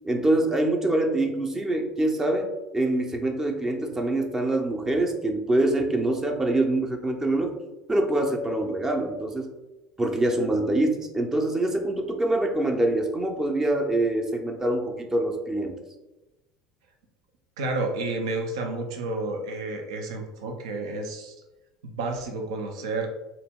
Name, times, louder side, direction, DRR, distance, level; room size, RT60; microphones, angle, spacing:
voice 1, 0.0-2.5 2.7-7.6 7.9-9.5 10.0-15.8, right 1 dB, 15° right, 3 dB, 0.6 m, -25 dB
voice 2, 17.6-21.3 21.8-23.1, right 2 dB, 75° right, 2 dB, 0.5 m, -30 dB
2.9 x 2.2 x 3.4 m, 1.0 s
hypercardioid pair, 75°, 3 cm